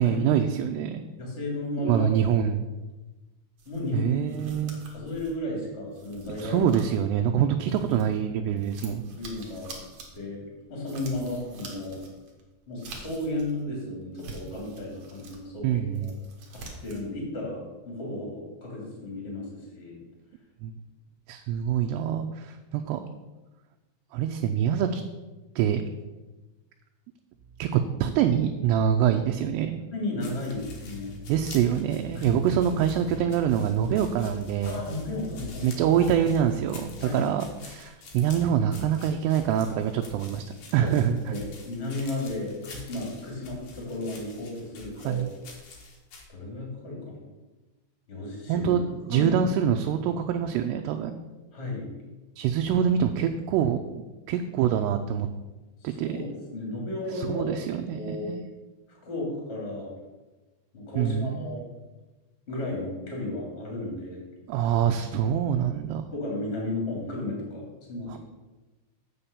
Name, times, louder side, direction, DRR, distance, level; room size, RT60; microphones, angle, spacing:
voice 1, 0.0-1.0 1.8-2.6 3.9-4.8 6.4-9.0 15.6-16.2 20.6-20.7 21.3-23.1 24.1-25.0 25.6-25.8 27.6-29.8 31.3-34.8 35.6-41.2 45.1-45.3 48.5-48.8 49.1-51.2 52.4-55.3 55.8-56.2 57.2-58.4 61.0-61.6 64.5-66.0 68.1-68.2, right 9 dB, 85° right, 5 dB, 2.5 m, -25 dB
voice 2, 1.2-2.1 3.6-4.5 4.9-6.6 9.2-9.7 10.1-10.4 10.7-12.1 12.7-16.1 16.5-20.0 29.9-31.1 32.1-32.4 34.6-35.7 37.0-37.2 40.8-40.9 41.2-45.2 46.3-47.3 48.1-48.7 49.1-49.4 51.5-51.9 55.8-57.7 57.9-58.3 59.0-59.9 60.7-61.7 62.5-64.2 66.1-68.2, left 2 dB, 20° left, -2 dB, 2.1 m, -34 dB
sound 1, 3.6-8.2 8.5-13.6 14.0-15.4 15.8-17.1, right 3 dB, 60° right, 1.7 m, -46 dB
sound 2, 30.2-46.2, left 3 dB, 60° left, 1.8 m, -47 dB
sound 3, 30.5-37.0, left 3 dB, 85° left, 0.9 m, -44 dB
7.7 x 5.7 x 6.8 m, 1.1 s
omnidirectional pair, 4.9 m